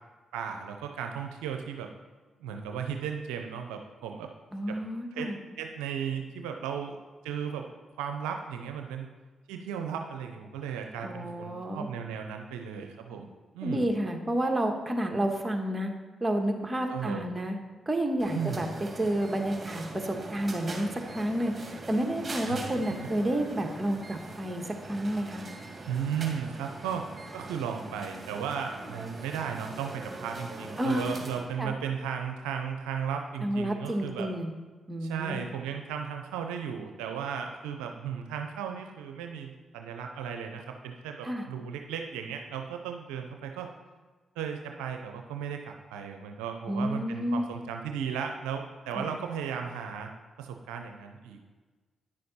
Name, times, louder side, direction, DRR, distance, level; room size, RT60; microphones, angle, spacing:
voice 1, 0.3-1.9 2.4-4.3 4.7-4.8 5.1-5.3 5.6-6.9 7.2-7.7 8.0-9.1 9.5-13.3 13.5-13.9 16.9-17.3 18.3-18.6 22.4-22.6 23.0-23.1 25.9-27.0 27.3-34.3 35.0-43.7 44.4-50.1 50.4-51.5, right 7 dB, 85° right, 4 dB, 0.5 m, -35 dB
voice 2, 4.5-5.4 11.0-11.9 13.6-15.9 16.2-17.6 17.9-18.7 19.0-25.4 30.8-31.1 31.6-31.8 33.4-34.5 34.9-35.4 41.2-41.5 46.7-47.4 48.9-49.2, right 1 dB, 20° right, 3 dB, 1.5 m, -30 dB
sound 1, 18.2-31.5, right 2 dB, 35° right, 1.9 m, -42 dB
9.9 x 6.4 x 4.2 m, 1.3 s
hypercardioid pair, 45°, 0 cm